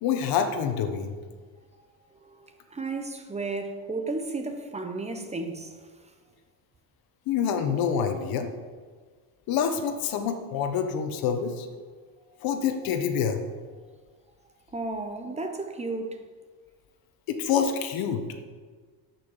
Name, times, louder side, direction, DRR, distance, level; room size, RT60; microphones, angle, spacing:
voice 1, 0.0-1.2 7.3-8.5 9.5-11.7 12.4-13.4 17.3-18.3, left 7 dB, 65° left, 1.4 m, -27 dB
voice 2, 2.2-5.8 14.7-16.2, right 3 dB, 15° right, 1.0 m, -33 dB
12.0 x 6.0 x 7.4 m
cardioid pair, 125°, 38 cm